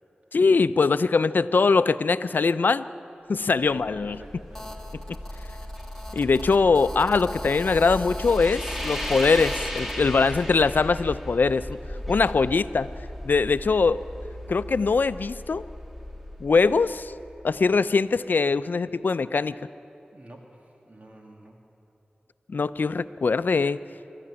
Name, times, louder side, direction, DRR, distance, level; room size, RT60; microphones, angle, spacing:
voice 1, 0.3-2.9 3.3-4.2 5.1-5.2 6.1-11.7 12.1-12.9 13.2-14.0 14.5-15.6 16.4-17.1 17.4-19.6 22.5-23.8, left 4 dB, 80° left, 14 dB, 0.5 m, -22 dB
voice 2, 3.5-4.8 10.1-10.6 20.1-21.7, right 1 dB, 45° right, 1 dB, 2.1 m, -47 dB
sound 1, 3.7-17.7, equal, 10° right, 2.5 m, -36 dB
Telephone, 4.5-10.0, left 1 dB, 10° left, 2.6 m, -41 dB
24.0 x 13.5 x 9.7 m, 2.9 s
wide cardioid pair, 55°, 3 cm